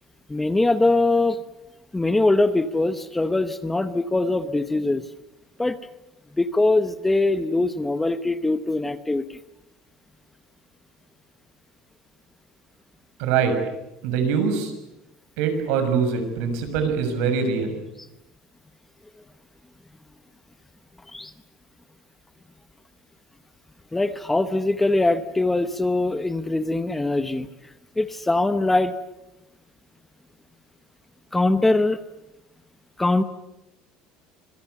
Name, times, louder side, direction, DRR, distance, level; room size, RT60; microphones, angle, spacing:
voice 1, 0.3-1.4 1.9-5.0 5.6-5.8 6.4-9.4 21.1-21.3 23.9-27.5 28.0-28.9 31.3-32.0 33.0-33.2, left 2 dB, 10° left, 11 dB, 0.9 m, -22 dB
voice 2, 13.2-13.6 14.0-14.7 15.4-17.8, right 6 dB, 70° right, 8 dB, 6.4 m, -23 dB
26.0 x 22.5 x 8.2 m, 0.91 s
cardioid pair, 160°, 2 cm